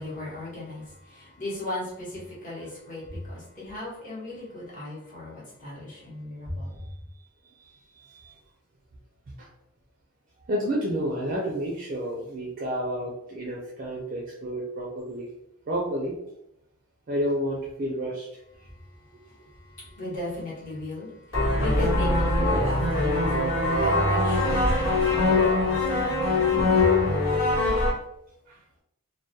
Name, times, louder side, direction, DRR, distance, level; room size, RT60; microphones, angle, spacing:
voice 1, 0.0-6.8 18.6-27.4, left 1 dB, 35° left, -7 dB, 0.9 m, -37 dB
voice 2, 7.6-8.3 9.3-9.5 10.5-15.3 15.7-16.2 17.1-18.4 28.5-28.6, equal, 35° right, -2 dB, 0.4 m, -31 dB
sound 1, 21.3-27.9, left 2 dB, 60° left, 1.2 m, -22 dB
2.2 x 2.1 x 2.7 m, 0.80 s
head